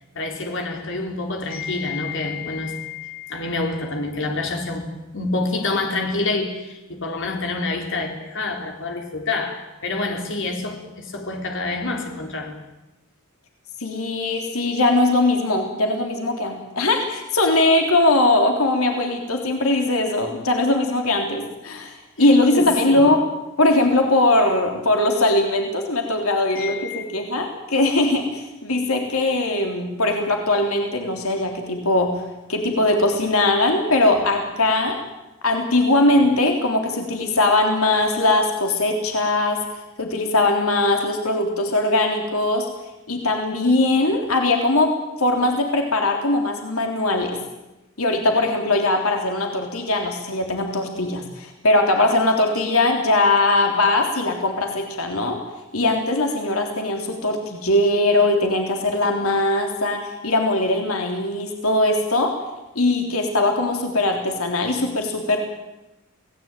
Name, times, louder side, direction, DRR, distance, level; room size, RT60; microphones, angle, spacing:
voice 1, 0.2-12.6 22.5-23.1 26.6-27.0, left 3 dB, 60° left, 3 dB, 4.0 m, -27 dB
voice 2, 13.8-23.2 23.6-32.1 32.5-35.0 35.4-42.7 43.1-44.9 45.2-47.4 48.0-55.4 55.7-62.3 62.7-65.4, left 2 dB, 85° left, 3 dB, 3.5 m, -20 dB
27.5 x 18.5 x 9.1 m, 0.99 s
head